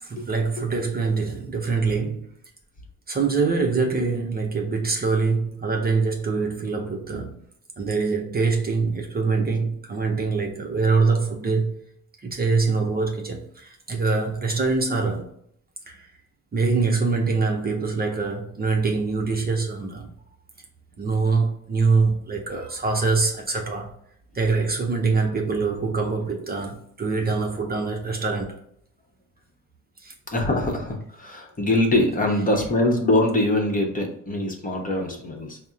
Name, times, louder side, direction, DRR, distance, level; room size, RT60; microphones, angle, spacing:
voice 1, 0.0-2.3 3.1-7.4 7.8-11.7 12.2-15.3 15.9-16.1 16.5-20.1 21.0-23.9 24.3-28.6 30.0-30.1, right 4 dB, 30° right, 0.6 m, -24 dB
voice 2, 30.3-35.6, left 1 dB, 25° left, 0.9 m, -23 dB
4.1 x 2.1 x 3.7 m
cardioid pair, 90°, 30 cm